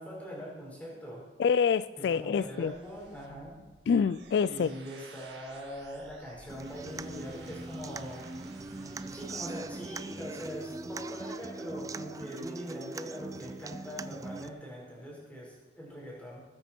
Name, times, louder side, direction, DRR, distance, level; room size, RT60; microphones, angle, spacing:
voice 1, 0.0-1.2 2.0-3.6 4.5-8.3 9.1-16.4, equal, 10° left, -4 dB, 4.8 m, -42 dB
voice 2, 1.4-2.7 3.9-4.7, left 6 dB, 70° left, 16 dB, 0.3 m, -26 dB
sound 1, 1.6-9.2, right 4 dB, 70° right, 1.6 m, -55 dB
Human voice / Acoustic guitar, 6.5-14.5, right 3 dB, 20° right, 0.3 m, -41 dB
sound 2, 6.7-11.8, right 1 dB, 40° right, 4.7 m, -54 dB
19.0 x 9.7 x 4.4 m, 1.2 s
head